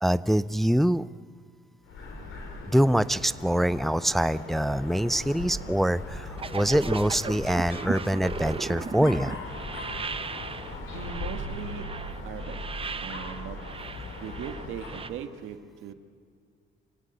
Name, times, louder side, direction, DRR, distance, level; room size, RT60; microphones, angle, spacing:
voice 1, 0.0-1.1 2.7-9.3, right 1 dB, ahead, 16 dB, 0.5 m, -24 dB
Dog, 1.8-15.1, left 2 dB, 85° left, 4.5 m, -39 dB
sound 1, 6.4-15.1, right 5 dB, 30° right, 0.8 m, -37 dB
voice 2, 10.9-11.9 12.2-12.6 13.0-13.6 14.2-15.9, right 9 dB, 90° right, 8 dB, 1.6 m, -39 dB
26.0 x 17.0 x 7.9 m, 2.1 s
cardioid pair, 90°, 20 cm